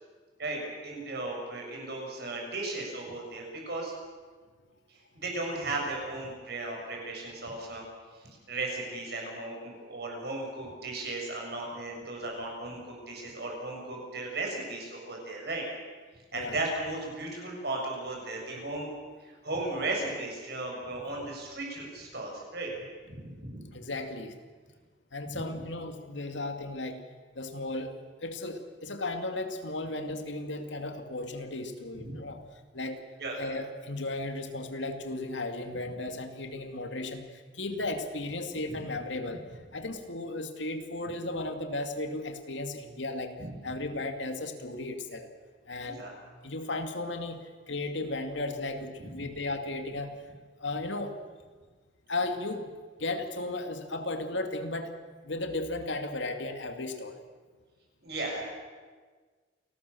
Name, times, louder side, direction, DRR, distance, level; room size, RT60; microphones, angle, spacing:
voice 1, 0.4-3.9 4.9-7.8 8.5-15.6 16.3-18.9 19.2-22.7 23.0-23.6 32.0-32.2 33.2-33.3 43.4-43.5 45.8-46.1 49.0-49.1 58.0-58.4, right 2 dB, 60° right, 0 dB, 7.3 m, -36 dB
voice 2, 23.7-24.4 25.1-27.0 27.3-27.9 28.2-32.4 32.7-33.0 33.4-39.4 39.7-45.3 45.7-46.0 46.4-50.1 50.6-51.2 52.1-52.7 53.0-55.0 55.2-57.2, left 2 dB, 80° left, 6 dB, 2.4 m, -35 dB
28.5 x 19.5 x 7.1 m, 1.5 s
head